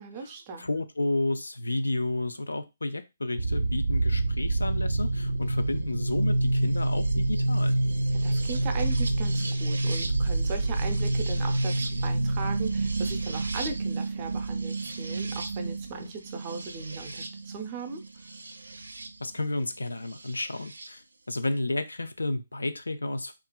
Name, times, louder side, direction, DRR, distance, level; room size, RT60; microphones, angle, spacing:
voice 1, 0.0-0.7 8.2-18.0, right 4 dB, 30° right, 4 dB, 0.5 m, -38 dB
voice 2, 0.6-7.7 19.2-23.3, left 2 dB, 85° left, 9 dB, 0.3 m, -31 dB
sound 1, 3.4-19.1 20.3-20.9, right 2 dB, 80° right, 0.4 m, -28 dB
2.8 x 2.4 x 2.2 m, 0.25 s
figure-of-eight pair, 145°, 0 cm